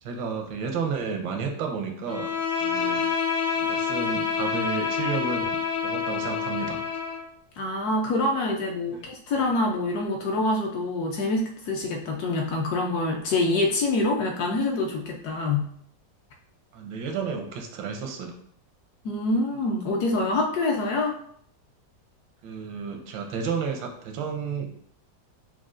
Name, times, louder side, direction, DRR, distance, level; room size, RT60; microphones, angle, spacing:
voice 1, 0.0-2.3 2.6-3.0 3.5-5.6 5.8-6.8 8.9-9.0 16.7-18.3 22.4-24.8, right 5 dB, 80° right, 3 dB, 1.4 m, -32 dB
Bowed string instrument, 2.1-7.3, left 6 dB, 90° left, 1.7 m, -27 dB
voice 2, 7.6-15.7 19.0-21.1, left 2 dB, 70° left, 0 dB, 1.0 m, -26 dB
6.0 x 2.3 x 2.5 m, 0.63 s
omnidirectional pair, 2.0 m